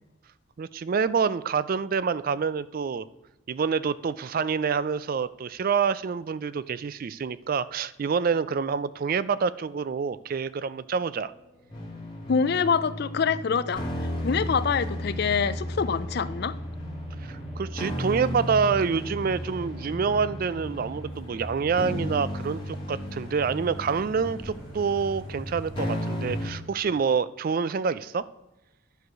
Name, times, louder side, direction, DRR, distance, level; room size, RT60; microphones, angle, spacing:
voice 1, 0.6-3.1 3.5-11.3 17.3-28.3, right 6 dB, 45° right, 0.3 m, -27 dB
sound 1, 9.9-21.2, right 2 dB, 5° right, 1.2 m, -47 dB
sound 2, 11.7-26.5, left 1 dB, 20° left, 2.2 m, -34 dB
voice 2, 12.3-13.8 14.2-16.6, left 6 dB, 50° left, 0.4 m, -25 dB
sound 3, 20.5-26.6, equal, 70° right, 2.1 m, -49 dB
10.5 x 4.8 x 6.1 m
head